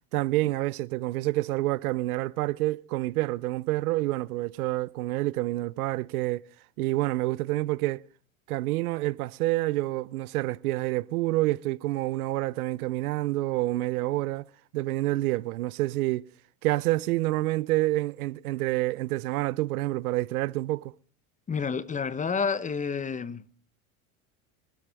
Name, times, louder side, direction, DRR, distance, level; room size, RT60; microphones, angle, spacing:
voice 1, 0.1-6.4 6.8-8.0 8.5-14.4 14.7-16.2 16.6-20.9, right 18 dB, 85° right, 0.7 m, -28 dB
voice 2, 21.5-23.4, left 5 dB, 15° left, 0.9 m, -29 dB
24.0 x 13.0 x 3.5 m
supercardioid pair, 110°, 43 cm